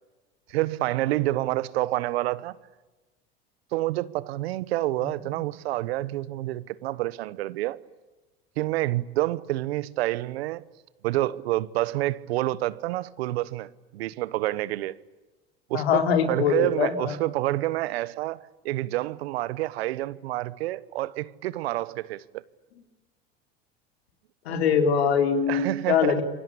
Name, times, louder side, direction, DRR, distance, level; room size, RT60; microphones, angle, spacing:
voice 1, 0.5-2.6 3.7-7.8 8.6-10.6 11.0-15.0 15.7-22.4 25.5-26.2, right 16 dB, 80° right, 1.2 m, -28 dB
voice 2, 15.7-17.1 24.5-26.2, left 7 dB, 80° left, 4.1 m, -23 dB
28.5 x 24.0 x 8.6 m
hypercardioid pair, 90°, 31 cm